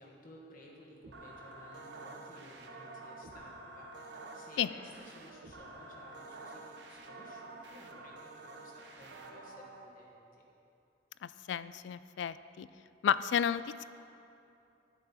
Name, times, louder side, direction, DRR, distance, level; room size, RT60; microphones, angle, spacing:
voice 1, 0.0-10.3, left 1 dB, 50° left, -3 dB, 1.6 m, -56 dB
sound 1, 1.0-9.8, right 2 dB, 70° right, 0.9 m, -49 dB
voice 2, 11.2-12.7 13.0-13.8, left 8 dB, 75° left, 15 dB, 0.3 m, -32 dB
12.0 x 9.1 x 4.1 m, 2.8 s
head